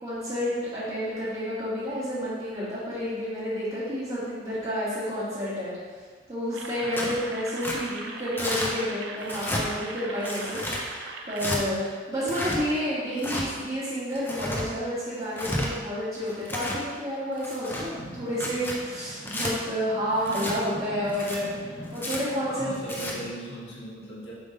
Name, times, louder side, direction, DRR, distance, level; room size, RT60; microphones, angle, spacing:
voice 1, 0.0-5.8 6.3-23.1, equal, 30° right, -14 dB, 2.0 m, -30 dB
sound 1, 6.5-11.6, right 3 dB, 70° right, 0.8 m, -40 dB
voice 2, 6.8-7.2 22.5-24.3, equal, 70° left, -7 dB, 2.1 m, -39 dB
Tearing, 6.9-7.2 7.6-7.8 8.4-8.7 9.2-9.6 10.2-10.8 11.4-11.6 12.2-12.6 13.2-13.4 14.1-14.6 15.2-15.7 16.3-16.8 17.4-17.8 18.3-18.8 19.3-19.5 20.3-20.5 21.1-21.4 21.9-22.2 22.8-23.1, left 1 dB, 10° left, 0.8 m, -31 dB
sound 2, 17.7-23.3, equal, 50° left, 1.4 m, -42 dB
7.1 x 3.7 x 5.3 m, 1.5 s
head